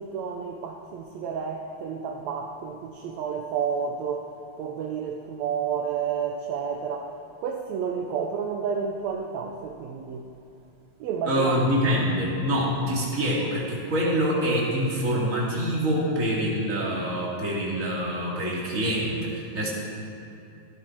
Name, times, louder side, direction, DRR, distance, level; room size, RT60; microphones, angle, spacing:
voice 1, 0.0-4.3 4.6-7.1 7.4-10.3 11.0-12.1, right 6 dB, 75° right, 2 dB, 1.9 m, -31 dB
voice 2, 11.2-19.7, equal, 25° right, -5 dB, 2.7 m, -25 dB
14.5 x 13.0 x 4.6 m, 2.7 s
omnidirectional pair, 3.4 m